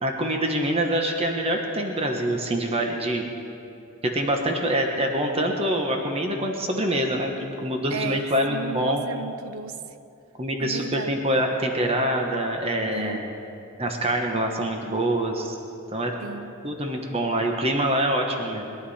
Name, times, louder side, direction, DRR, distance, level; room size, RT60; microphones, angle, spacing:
voice 1, 0.0-3.3 4.0-7.3 7.6-9.1 10.4-13.3 13.8-15.6 15.9-16.1 16.6-18.7, right 1 dB, 30° right, 2 dB, 1.2 m, -25 dB
voice 2, 7.9-9.8 10.6-11.3 12.9-13.2 16.2-16.5, right 6 dB, 90° right, 12 dB, 0.6 m, -34 dB
22.0 x 11.5 x 4.3 m, 2.7 s
head